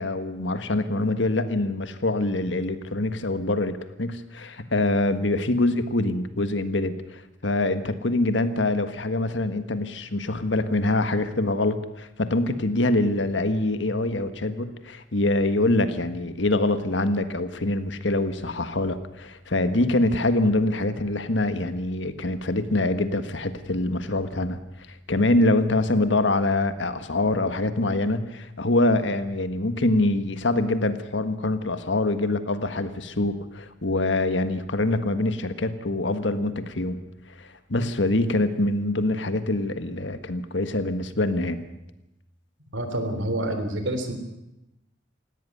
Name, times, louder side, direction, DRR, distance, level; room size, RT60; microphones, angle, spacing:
voice 1, 0.0-24.6 25.1-37.0 37.4-41.6, left 2 dB, 75° left, 10 dB, 1.6 m, -24 dB
voice 2, 42.7-44.1, right 1 dB, 85° right, 8 dB, 3.5 m, -27 dB
18.5 x 17.0 x 9.5 m, 0.91 s
head